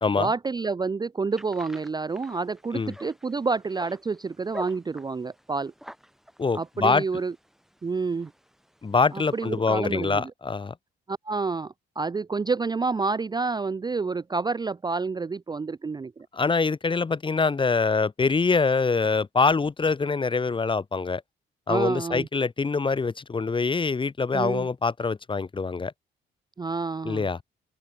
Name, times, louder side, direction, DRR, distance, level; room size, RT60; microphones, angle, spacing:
voice 1, 0.2-5.7 6.5-7.3 7.8-8.3 9.1-10.3 11.1-16.3 21.7-22.3 24.3-24.7 26.6-27.3, right 4 dB, 20° right, 0.5 m, -29 dB
sound 1, 1.3-9.6, equal, ahead, 7.7 m, -47 dB
voice 2, 6.4-7.0 8.8-10.7 16.3-21.2 21.7-25.9 27.0-27.4, left 4 dB, 25° left, 1.0 m, -24 dB
open air
cardioid pair, 90°, 20 cm